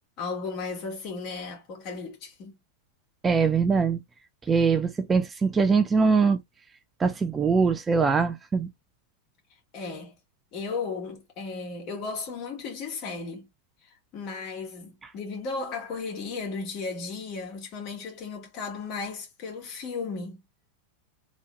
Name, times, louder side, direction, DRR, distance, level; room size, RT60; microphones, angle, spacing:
voice 1, 0.2-2.5 9.7-10.2 10.5-13.5 14.1-20.4, left 4 dB, 40° left, 2.2 m, -35 dB
voice 2, 3.2-4.0 4.5-6.4 7.0-8.7, right 5 dB, 15° right, 0.6 m, -22 dB
3.8 x 3.7 x 3.8 m
figure-of-eight pair, 90°, 0 cm